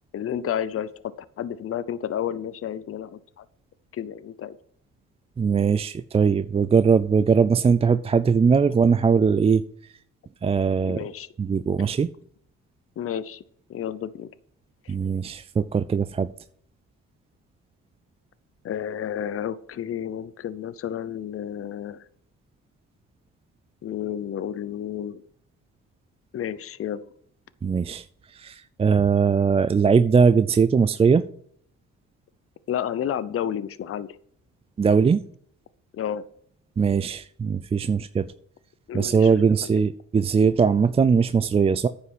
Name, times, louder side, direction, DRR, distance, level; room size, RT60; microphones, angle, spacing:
voice 1, 0.1-0.9 1.4-3.4 3.9-4.6 10.8-11.3 13.0-13.4 13.7-14.3 14.9-15.0 18.6-22.0 23.8-25.2 26.3-27.0 32.7-34.2 35.9-36.2 38.9-39.7, left 9 dB, 50° left, 0.7 m, -31 dB
voice 2, 5.4-9.6 10.4-11.1 11.4-12.1 14.9-16.3 27.6-28.0 28.4-31.3 34.8-35.2 36.8-38.3 38.9-41.9, right 5 dB, 20° right, 0.3 m, -20 dB
9.7 x 5.8 x 6.1 m
cardioid pair, 90°, 30 cm